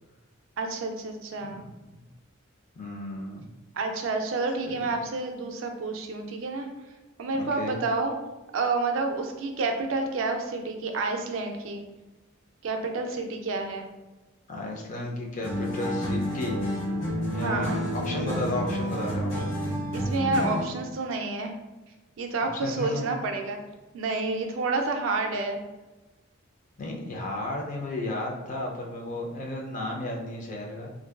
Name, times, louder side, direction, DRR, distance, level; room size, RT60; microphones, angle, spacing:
voice 1, 0.6-1.6 3.7-6.7 7.2-8.1 8.5-11.8 12.6-13.9 17.4-17.8 19.9-21.5 22.2-23.6 23.9-25.6, right 3 dB, 75° right, 4 dB, 0.4 m, -29 dB
voice 2, 2.8-3.5 4.6-4.8 7.4-7.8 14.5-16.6 17.3-19.6 22.6-23.1 26.8-30.9, left 2 dB, 40° left, 0 dB, 0.4 m, -33 dB
sound 1, 15.4-20.8, equal, 75° left, 1.0 m, -29 dB
2.5 x 2.3 x 2.2 m, 1.1 s
head